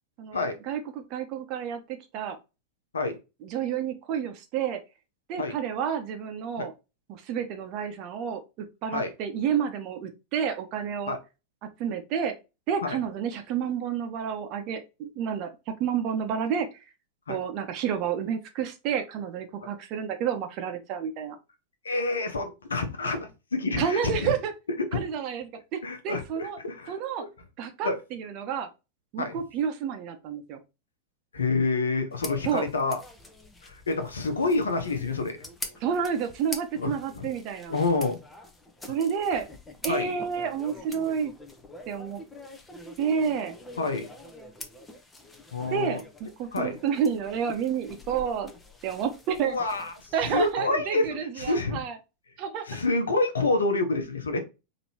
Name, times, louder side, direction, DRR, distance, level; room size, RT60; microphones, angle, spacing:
voice 1, 0.2-2.4 3.4-4.8 5.3-6.7 7.1-11.1 11.8-12.3 12.7-15.5 15.8-16.7 17.3-21.4 23.8-24.5 24.9-25.5 25.7-26.6 26.9-27.3 27.6-28.7 29.1-30.6 32.4-32.7 35.8-37.8 38.9-39.5 39.8-41.3 41.9-42.2 43.0-43.5 45.7-48.5 48.8-49.6 50.1-52.0 52.4-52.6, right 7 dB, 40° right, 0.9 m, -30 dB
voice 2, 21.8-24.3 24.9-25.0 25.8-27.0 27.2-27.3 27.8-27.9 29.2-29.4 31.3-33.0 33.6-35.4 36.8-37.3 37.7-38.2 39.9-40.1 43.8-44.1 45.5-46.0 46.5-46.8 49.4-51.8 52.7-54.4, left 3 dB, 70° left, 1.0 m, -28 dB
sound 1, 32.1-50.5, left 2 dB, 10° left, 0.9 m, -45 dB
5.3 x 3.0 x 2.9 m
figure-of-eight pair, 90°, 0 cm